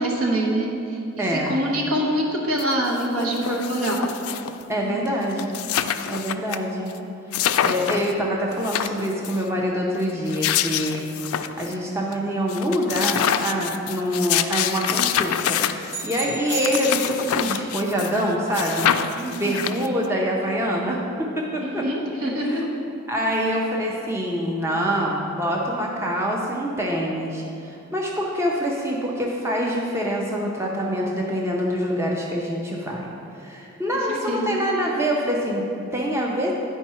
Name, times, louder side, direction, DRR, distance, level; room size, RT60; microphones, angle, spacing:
voice 1, 0.0-4.1 4.8-5.0 19.2-19.6 21.6-22.7 34.1-34.5, right 1 dB, 75° right, -2 dB, 1.2 m, -25 dB
voice 2, 1.2-1.5 4.7-5.5 6.1-6.9 7.4-18.9 19.3-21.9 22.4-22.6 23.1-33.1 33.4-36.5, equal, 10° right, -2 dB, 0.5 m, -25 dB
sound 1, 2.6-2.7 2.9-4.6 5.1-5.2 5.3-6.6 6.9-7.0 7.3-8.1 8.5-9.4 10.1-11.7 12.1-12.2 12.5-18.2 18.5-20.1, left 9 dB, 75° left, 0.3 m, -26 dB
sound 2, 15.9-17.7, right 4 dB, 55° right, 0.8 m, -34 dB
9.5 x 4.5 x 4.3 m, 2.8 s
head